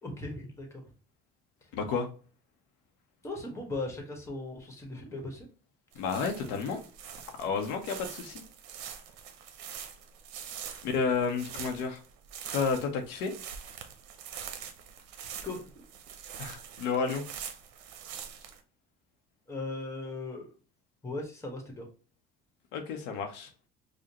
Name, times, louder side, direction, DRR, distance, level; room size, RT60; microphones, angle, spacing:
voice 1, 0.0-0.8 3.2-5.5 15.4-15.7 19.5-20.5 21.0-21.9, left 2 dB, 15° left, 2 dB, 1.2 m, -38 dB
voice 2, 1.7-2.1 6.0-6.8 7.4-8.4 10.8-12.0 12.5-13.3 16.4-17.2 22.7-23.5, left 5 dB, 80° left, 4 dB, 0.7 m, -31 dB
sound 1, 5.9-18.6, right 8 dB, 80° right, 0.6 m, -44 dB
5.0 x 2.1 x 2.9 m, 0.37 s
cardioid pair, 110°, 18 cm